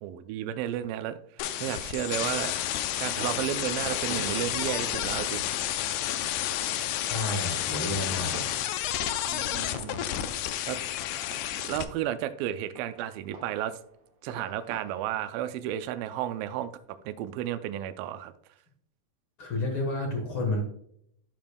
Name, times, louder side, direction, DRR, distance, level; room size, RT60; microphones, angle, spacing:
voice 1, 0.0-1.2 1.6-5.4 9.3-10.0 10.7-10.8 11.6-13.8 14.2-16.7 17.1-18.3, right 11 dB, 80° right, 10 dB, 2.2 m, -33 dB
sound 1, 1.4-11.8, left 12 dB, 85° left, 1.8 m, -31 dB
Fireworks, 3.0-17.1, right 2 dB, 60° right, 2.1 m, -49 dB
voice 2, 7.0-8.5 19.4-20.7, left 2 dB, 60° left, 0 dB, 1.3 m, -30 dB
13.0 x 5.2 x 2.2 m, 0.70 s
omnidirectional pair, 4.2 m